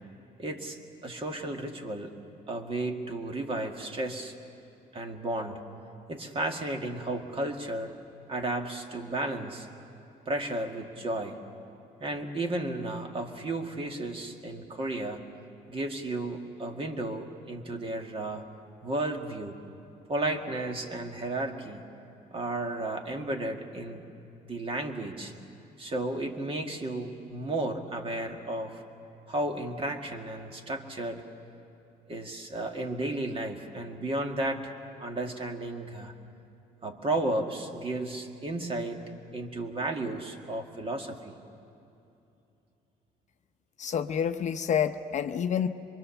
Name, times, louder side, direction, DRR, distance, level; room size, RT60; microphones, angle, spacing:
voice 1, 0.4-2.1 2.5-4.3 4.9-5.7 6.1-7.9 8.3-9.7 10.3-11.4 12.0-15.3 15.7-18.5 18.8-19.6 20.1-21.9 22.3-24.0 24.4-25.3 25.8-28.8 29.3-31.2 32.1-34.7 35.0-36.1 36.8-39.0 39.3-41.3, right 2 dB, 30° right, 4 dB, 1.9 m, -33 dB
voice 2, 43.8-45.7, left 8 dB, 45° left, 8 dB, 0.8 m, -28 dB
24.5 x 22.5 x 7.1 m, 2.8 s
cardioid pair, 110°, 17 cm